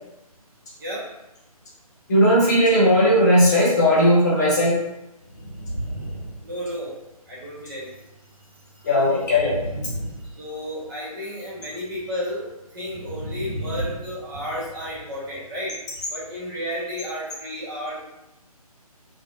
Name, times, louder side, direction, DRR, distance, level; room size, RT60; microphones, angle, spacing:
voice 1, 2.1-4.8 8.8-9.6, equal, 30° left, -6 dB, 1.0 m, -17 dB
sound 1, 3.5-3.7 5.2-7.1 9.2-10.9 12.8-14.8, right 1 dB, 70° right, 1.3 m, -34 dB
voice 2, 6.4-7.0 7.3-8.1 8.7-8.9 10.2-15.7 16.1-17.9, equal, 35° right, -7 dB, 1.3 m, -32 dB
3.3 x 2.1 x 2.5 m, 0.92 s
figure-of-eight pair, 145°, 19 cm